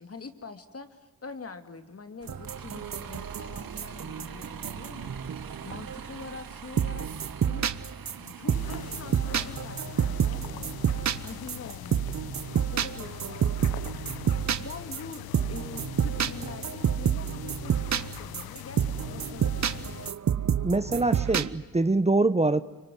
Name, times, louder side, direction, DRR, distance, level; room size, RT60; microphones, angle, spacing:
voice 1, 0.0-7.7 8.2-12.2 12.7-13.8 14.6-20.0, left 4 dB, 40° left, 9 dB, 2.8 m, -44 dB
Bus, 2.2-13.0, right 7 dB, 70° right, 2.4 m, -45 dB
sound 1, 2.3-6.2 6.8-21.5, right 8 dB, 50° right, 1.1 m, -29 dB
sound 2, 8.5-20.1, left 14 dB, 80° left, 1.0 m, -42 dB
voice 2, 20.6-22.6, right 2 dB, 20° right, 13 dB, 1.1 m, -24 dB
25.0 x 24.5 x 9.6 m, 1.2 s
supercardioid pair, 50°, 36 cm